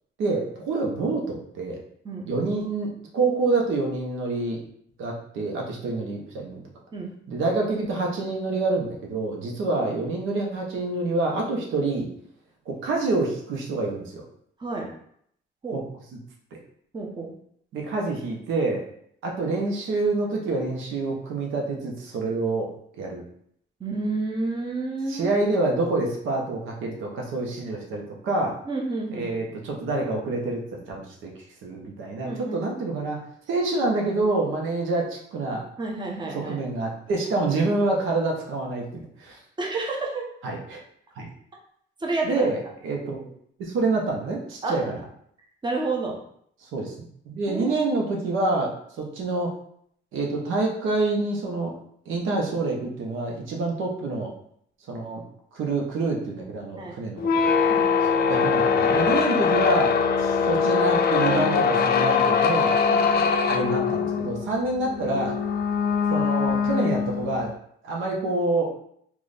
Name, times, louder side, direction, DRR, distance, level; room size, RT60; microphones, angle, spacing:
voice 1, 0.2-1.8 2.3-4.6 5.0-6.6 7.3-12.1 12.7-14.2 15.7-15.8 16.5-16.6 17.7-18.8 19.2-22.7 23.0-23.2 25.1-28.6 29.1-31.3 31.6-33.2 33.5-35.6 36.5-39.4 40.4-40.8 41.2-41.3 42.2-43.3 43.6-45.0 46.7-49.5 50.1-51.7 52.1-54.3 54.9-55.2 55.5-57.5 58.3-62.8 63.5-65.4 66.1-67.5 67.8-68.7, right 2 dB, 85° right, 0 dB, 0.8 m, -27 dB
voice 2, 16.9-17.3 23.8-25.3 28.7-29.5 32.2-32.6 35.8-36.6 39.6-40.2 42.0-42.4 44.6-44.8 45.6-46.1 47.5-47.8 56.8-57.0 57.7-57.9 62.9-63.3, right 3 dB, 25° right, -1 dB, 0.8 m, -30 dB
sound 1, 57.2-67.5, left 6 dB, 50° left, 0.4 m, -22 dB
3.1 x 2.4 x 3.9 m, 0.67 s
cardioid pair, 90°, 20 cm